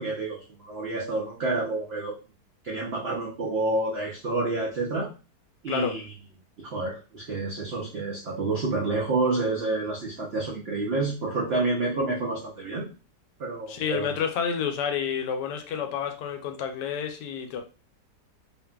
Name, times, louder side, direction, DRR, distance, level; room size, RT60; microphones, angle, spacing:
voice 1, 0.0-2.2 2.6-5.1 5.6-6.0 6.6-12.9 13.4-14.1, right 2 dB, 85° right, 0.5 m, -29 dB
voice 2, 13.7-17.6, left 7 dB, 85° left, 1.2 m, -29 dB
2.7 x 2.5 x 2.2 m
omnidirectional pair, 1.8 m